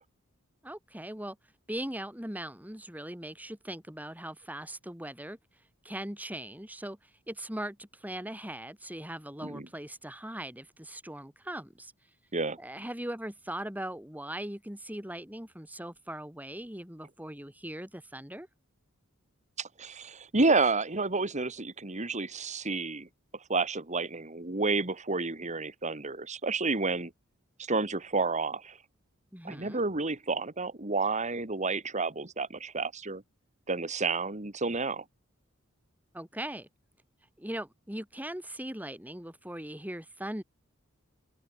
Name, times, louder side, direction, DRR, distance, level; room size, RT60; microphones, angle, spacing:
voice 1, 0.6-1.4 1.7-5.4 5.8-11.9 12.6-18.5 29.3-29.8 36.1-36.7 37.4-40.4, right 1 dB, 10° right, 5.4 m, -40 dB
voice 2, 19.6-23.1 23.5-27.1 27.7-28.8 29.4-33.2 33.7-35.0, right 3 dB, 35° right, 2.2 m, -30 dB
open air
head